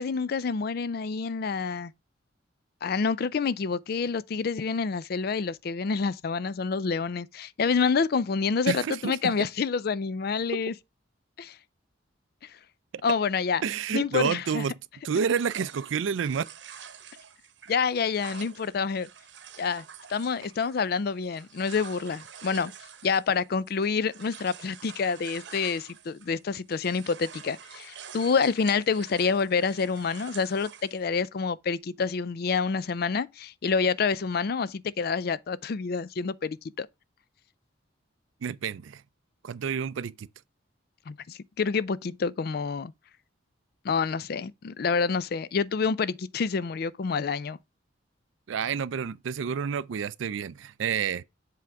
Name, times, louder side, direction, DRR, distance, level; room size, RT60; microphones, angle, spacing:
voice 1, 0.0-1.9 2.8-10.7 11.4-11.6 13.0-13.6 13.9-14.6 17.7-19.1 19.6-19.8 20.1-22.7 23.0-36.9 41.1-42.9 43.8-47.6, left 5 dB, 50° left, 0.4 m, -28 dB
voice 2, 8.7-9.3 10.5-10.6 13.6-14.7 15.0-16.4 38.4-39.0 39.4-40.3 48.5-51.2, right 7 dB, 80° right, 0.4 m, -29 dB
sound 1, 15.3-26.4 26.7-31.0, right 7 dB, 65° right, 0.9 m, -47 dB
7.6 x 3.5 x 4.5 m
head